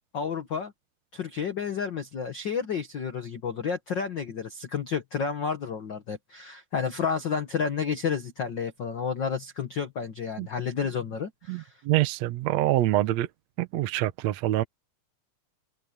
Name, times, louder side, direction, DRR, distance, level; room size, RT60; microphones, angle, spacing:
voice 1, 0.1-0.7 1.1-11.7, left 6 dB, 70° left, 1.0 m, -31 dB
voice 2, 11.5-13.3 13.6-14.6, right 15 dB, 75° right, 1.6 m, -25 dB
omnidirectional pair, 4.1 m